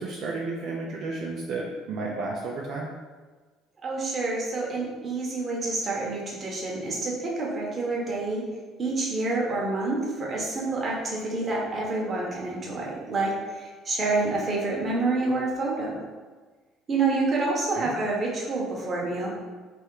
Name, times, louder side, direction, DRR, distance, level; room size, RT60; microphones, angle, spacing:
voice 1, 0.0-2.9 17.7-17.9, right 3 dB, 55° right, -3 dB, 0.6 m, -32 dB
voice 2, 3.8-8.5 8.8-16.0 16.9-19.3, right 3 dB, 30° right, -3 dB, 1.2 m, -28 dB
3.5 x 3.0 x 4.8 m, 1.4 s
cardioid pair, 130°, 0 cm